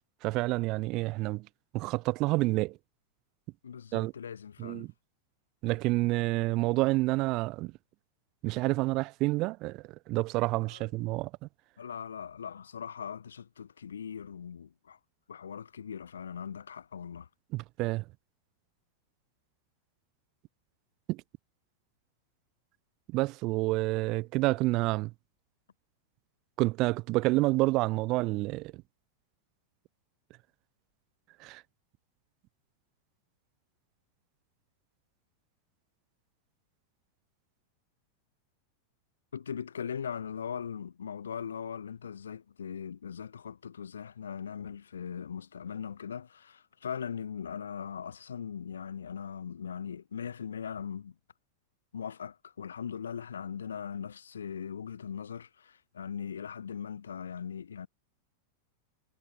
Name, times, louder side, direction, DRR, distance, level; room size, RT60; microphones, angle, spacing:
voice 1, 0.2-1.5 1.7-2.8 3.9-4.1 4.6-4.9 5.6-7.7 8.4-11.5 17.5-18.0 21.1-21.2 23.1-25.1 26.6-28.8 31.4-31.6, right 21 dB, 40° right, 0.5 m, -29 dB
voice 2, 3.6-4.9 10.7-10.8 11.8-15.0 15.3-17.3 39.3-51.1 51.9-57.9, left 7 dB, 70° left, 1.0 m, -40 dB
figure-of-eight pair, 90°, 0 cm